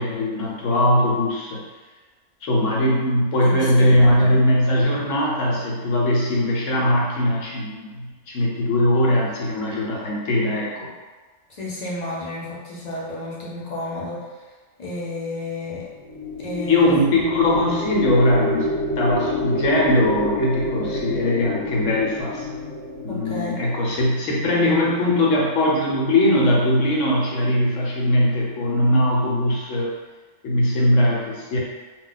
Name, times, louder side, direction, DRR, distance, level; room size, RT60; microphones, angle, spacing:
voice 1, 0.0-1.6 2.4-10.9 16.7-18.7 19.0-22.5 23.0-29.9 30.4-31.6, left 1 dB, 70° left, -3 dB, 0.9 m, -20 dB
voice 2, 3.4-4.4 11.6-14.2 14.8-15.8 16.4-16.9 23.1-23.6, left 1 dB, 45° left, -6 dB, 0.6 m, -31 dB
sound 1, 15.8-24.3, left 1 dB, 85° left, 1.2 m, -28 dB
2.3 x 2.2 x 3.8 m, 1.3 s
omnidirectional pair, 1.4 m